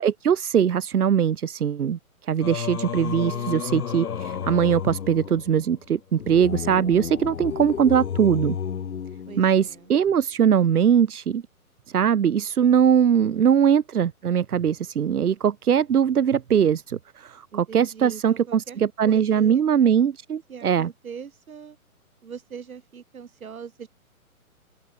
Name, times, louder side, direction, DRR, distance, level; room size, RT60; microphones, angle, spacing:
voice 1, 0.0-8.6 9.4-11.4 11.9-20.9, right 8 dB, 85° right, 1.0 m, -21 dB
Singing, 2.4-9.8, left 8 dB, 80° left, 1.2 m, -32 dB
voice 2, 3.2-3.7 9.3-9.9 13.0-13.5 17.5-18.8 19.1-19.6 20.5-21.8 22.2-23.9, right 7 dB, 70° right, 5.8 m, -41 dB
hypercardioid pair, 145°, 44 cm